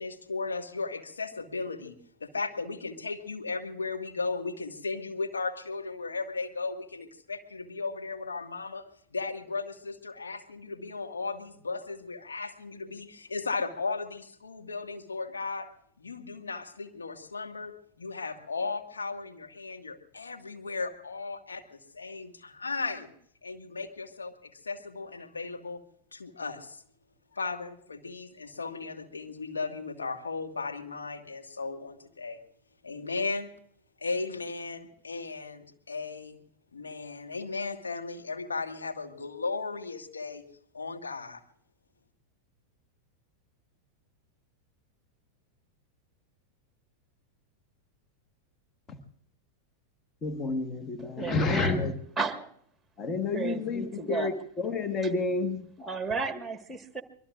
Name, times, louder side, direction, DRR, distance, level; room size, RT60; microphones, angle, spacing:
voice 1, 0.0-2.0 2.2-15.7 16.0-23.1 23.4-25.8 26.1-26.8 27.3-32.4 32.8-33.5 34.0-36.4 36.7-40.4 40.7-41.4, left 4 dB, 75° left, 1.7 m, -36 dB
voice 2, 50.2-51.9 53.0-55.6, left 4 dB, 25° left, 1.4 m, -30 dB
voice 3, 51.0-51.9 52.2-52.5 53.3-54.4 55.0-55.1 55.8-57.0, right 4 dB, 5° right, 1.5 m, -33 dB
25.0 x 22.0 x 2.5 m
figure-of-eight pair, 90°, 0 cm